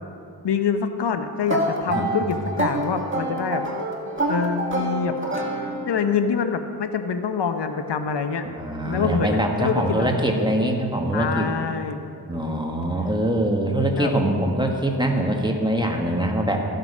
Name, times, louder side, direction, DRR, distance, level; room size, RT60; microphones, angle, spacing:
voice 1, 0.4-3.6 4.3-5.5 5.9-8.4 8.8-10.1 11.1-12.0 14.0-14.1, left 6 dB, 85° left, 8 dB, 0.7 m, -25 dB
sound 1, 1.5-6.1, right 1 dB, 30° right, 1.6 m, -27 dB
voice 2, 1.9-2.3 8.4-11.5 12.2-16.7, right 1 dB, 10° right, 1 dB, 1.4 m, -23 dB
13.5 x 8.0 x 5.4 m, 2.5 s
wide cardioid pair, 70°, 40 cm